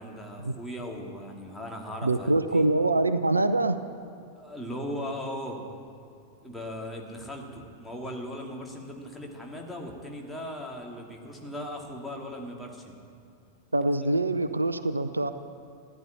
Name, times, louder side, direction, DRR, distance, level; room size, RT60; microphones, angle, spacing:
voice 1, 0.0-2.3 2.5-2.7 4.4-5.6 6.4-12.9, equal, 5° left, -1 dB, 2.5 m, -38 dB
voice 2, 2.0-3.8 13.7-15.3, right 2 dB, 80° right, 11 dB, 0.6 m, -24 dB
15.0 x 11.0 x 8.8 m, 2.4 s
figure-of-eight pair, 90°, 0 cm